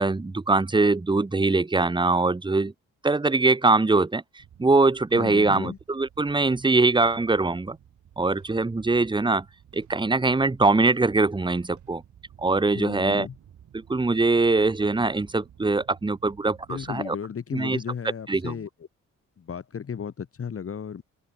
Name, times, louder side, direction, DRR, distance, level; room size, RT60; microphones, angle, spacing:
voice 1, 0.0-2.7 3.0-7.8 8.2-9.5 9.7-12.0 12.4-13.3 13.7-17.1 17.5-17.8 18.3-18.5, right 3 dB, 15° right, 1.0 m, -22 dB
sound 1, 4.4-17.0, right 10 dB, 65° right, 3.6 m, -53 dB
voice 2, 5.1-5.8 12.7-13.4 16.7-18.7 19.4-21.0, left 7 dB, 45° left, 1.8 m, -34 dB
supercardioid pair, 65°, 32 cm